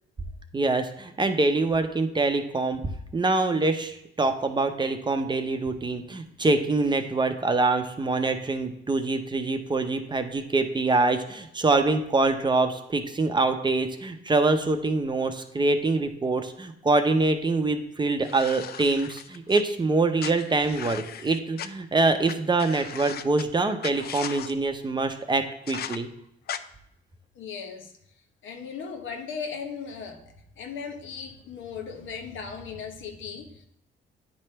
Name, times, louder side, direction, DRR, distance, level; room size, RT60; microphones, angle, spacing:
voice 1, 0.5-2.8 3.1-26.1, right 3 dB, 20° right, 6 dB, 0.7 m, -25 dB
sound 1, 18.2-19.6 20.2-21.7 22.3-22.4 22.6-23.4 23.8-24.5 25.7-26.0 26.5-26.6, left 9 dB, 55° left, 0.4 m, -37 dB
voice 2, 27.3-27.9 28.4-30.2 30.6-33.7, left 6 dB, 75° left, 4 dB, 1.0 m, -37 dB
9.5 x 3.3 x 4.4 m, 0.77 s
cardioid pair, 90°, 20 cm